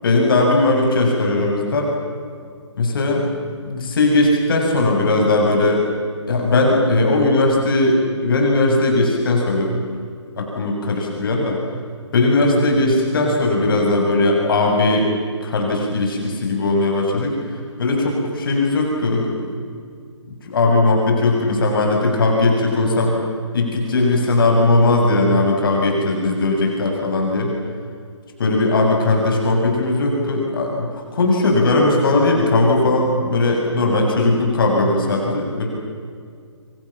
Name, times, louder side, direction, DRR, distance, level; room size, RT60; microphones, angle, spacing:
voice 1, 0.0-1.9 2.8-3.3 3.6-5.8 6.3-9.8 10.4-11.6 12.1-15.1 15.4-17.4 17.8-19.5 20.4-23.1 23.5-27.5 28.4-35.7, left 2 dB, 45° left, 1 dB, 7.1 m, -18 dB
28.5 x 25.5 x 7.3 m, 2.2 s
figure-of-eight pair, 145°, 16 cm